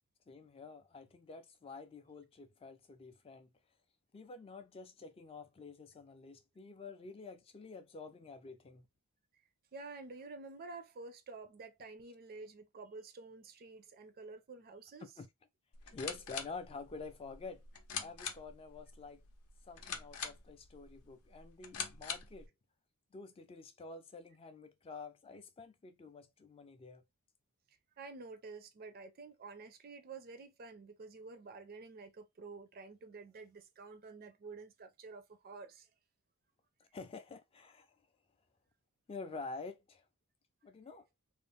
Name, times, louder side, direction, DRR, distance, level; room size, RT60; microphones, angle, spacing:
voice 1, 0.3-3.5 4.1-8.9 15.0-15.3 15.8-17.6 18.0-19.2 19.7-22.5 23.1-27.0 36.9-38.0 39.1-40.0 40.6-41.1, left 4 dB, 25° left, 0.3 m, -48 dB
voice 2, 9.7-15.1 27.7-35.9, right 3 dB, 45° right, 0.4 m, -50 dB
sound 1, 15.7-22.5, left 6 dB, 70° left, 0.6 m, -45 dB
2.5 x 2.0 x 3.4 m
head